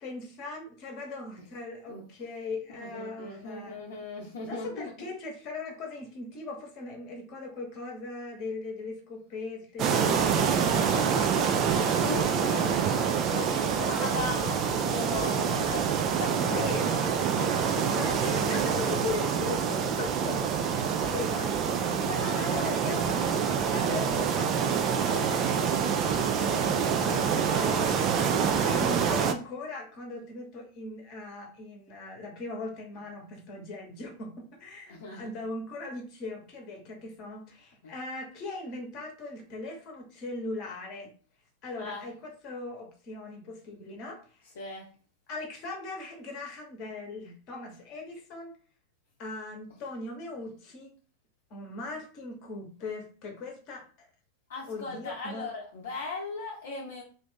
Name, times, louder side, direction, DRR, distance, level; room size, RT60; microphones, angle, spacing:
voice 1, 0.0-3.8 4.5-11.5 12.1-12.5 12.8-12.9 16.4-17.1 17.8-21.6 22.4-23.0 23.7-28.0 28.7-41.1 41.6-44.2 45.3-48.5 49.2-50.9 51.5-54.1 54.7-55.5, left 3 dB, 40° left, 2 dB, 1.0 m, -39 dB
voice 2, 2.9-4.9 10.5-11.2 12.0-12.2 12.5-12.6 13.3-15.9 16.2-16.7 17.4-19.0 22.0-22.7 26.7-27.2 34.9-35.3 37.8-37.9 41.8-42.0 44.6-44.9 54.5-57.0, left 3 dB, 60° left, -2 dB, 0.6 m, -38 dB
sound 1, 9.8-29.3, right 7 dB, 35° right, 0.3 m, -26 dB
2.6 x 2.4 x 3.6 m, 0.40 s
figure-of-eight pair, 90°, 0 cm